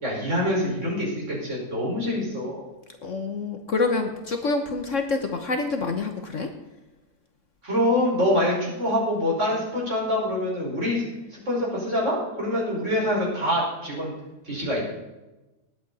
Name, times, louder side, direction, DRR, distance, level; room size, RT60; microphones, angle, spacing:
voice 1, 0.0-2.6 7.6-11.0 11.3-14.1 14.4-14.9, left 1 dB, 45° right, -4 dB, 5.5 m, -25 dB
voice 2, 3.0-6.5, left 3 dB, 50° left, 5 dB, 1.3 m, -27 dB
19.5 x 8.5 x 4.2 m, 1.0 s
omnidirectional pair, 1.7 m